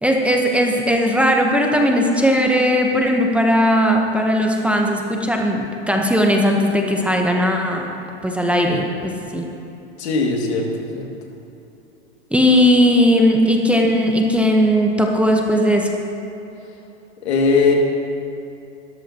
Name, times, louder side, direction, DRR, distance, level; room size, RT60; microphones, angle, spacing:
voice 1, 0.0-7.9 8.2-9.4 12.3-16.0, equal, 5° right, 1 dB, 0.9 m, -17 dB
voice 2, 10.0-11.1 17.2-17.7, left 4 dB, 75° left, 0 dB, 2.2 m, -19 dB
19.0 x 13.0 x 2.9 m, 2.9 s
hypercardioid pair, 120°, 33 cm